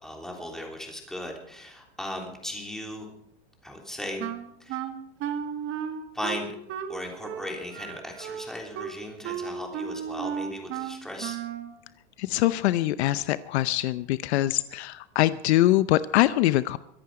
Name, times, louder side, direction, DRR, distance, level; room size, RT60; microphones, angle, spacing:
voice 1, 0.0-3.1 3.6-4.2 4.6-4.8 6.1-6.6 6.9-11.4, left 1 dB, ahead, 0 dB, 3.3 m, -37 dB
Wind instrument woodwind instrument, 4.2-11.7, right 8 dB, 35° right, 1.7 m, -34 dB
voice 2, 12.3-16.8, left 15 dB, 65° left, 15 dB, 0.7 m, -23 dB
23.5 x 10.5 x 4.9 m, 0.76 s
supercardioid pair, 150°, 35 cm